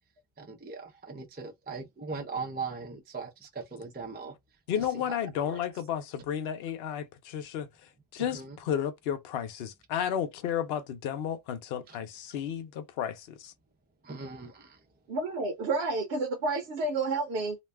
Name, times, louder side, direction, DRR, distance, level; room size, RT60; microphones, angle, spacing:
voice 1, 0.4-4.3 4.8-5.6 8.2-8.6 11.9-12.0 14.0-14.8, right 4 dB, 15° right, 0.4 m, -40 dB
voice 2, 4.7-7.7 8.1-13.5, left 9 dB, 75° left, 0.8 m, -32 dB
voice 3, 15.1-17.6, right 3 dB, 75° right, 0.9 m, -30 dB
2.6 x 2.2 x 3.2 m
omnidirectional pair, 1.1 m